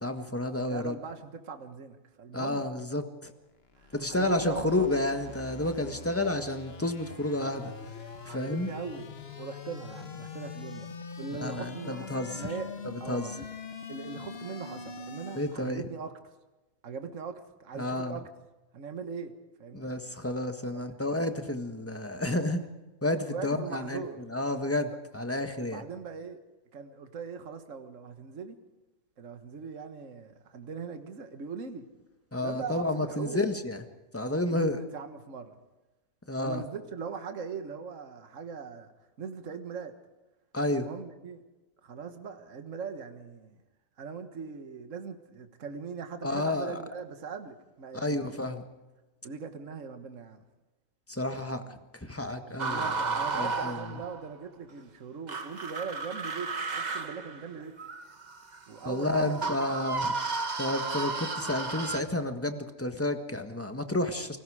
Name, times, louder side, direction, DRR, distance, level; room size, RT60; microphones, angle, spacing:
voice 1, 0.0-0.9 2.3-3.3 3.9-7.7 8.3-8.7 11.4-12.4 13.1-13.3 15.3-15.8 17.8-18.2 19.7-22.6 23.0-24.0 24.3-25.8 32.3-33.8 34.1-34.8 36.3-36.6 40.5-40.9 46.2-46.8 47.9-48.6 51.1-51.6 52.1-52.9 53.3-53.9 58.8-60.1 60.6-64.4, left 1 dB, 10° left, 7 dB, 1.4 m, -30 dB
voice 2, 0.7-2.6 3.8-4.9 8.3-10.9 11.2-12.7 13.0-13.5 13.9-16.1 16.8-18.3 18.7-19.3 19.6-19.9 20.7-20.8 22.2-22.4 23.3-24.2 25.6-26.4 26.7-28.6 29.2-31.9 32.4-33.4 34.5-35.6 36.4-38.9 39.2-39.9 40.7-41.4 41.8-43.6 44.0-48.2 49.2-50.4 51.5-51.8 52.5-57.8 58.7-59.7 60.1-60.2, right 5 dB, 55° right, 7 dB, 1.8 m, -40 dB
sound 1, 3.5-15.7, left 5 dB, 45° left, 1.5 m, -43 dB
sound 2, 52.6-54.3 55.3-62.0, right 4 dB, 30° right, 1.1 m, -33 dB
29.0 x 20.0 x 5.0 m, 1.1 s
omnidirectional pair, 1.6 m